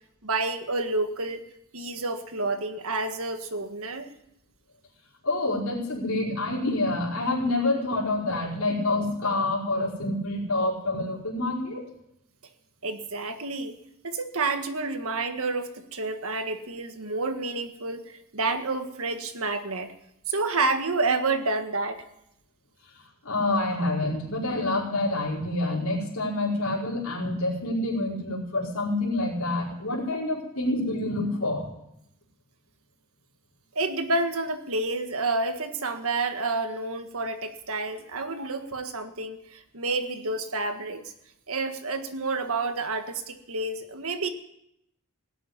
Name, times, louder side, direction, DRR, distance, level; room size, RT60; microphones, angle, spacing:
voice 1, 0.2-1.4 1.7-4.1 12.8-13.7 14.0-19.9 20.3-22.0 33.8-41.0 41.5-44.3, right 3 dB, 70° right, 7 dB, 1.7 m, -29 dB
voice 2, 5.2-11.8 23.2-31.7, left 2 dB, 70° left, -5 dB, 5.2 m, -27 dB
17.0 x 8.7 x 9.9 m, 0.79 s
head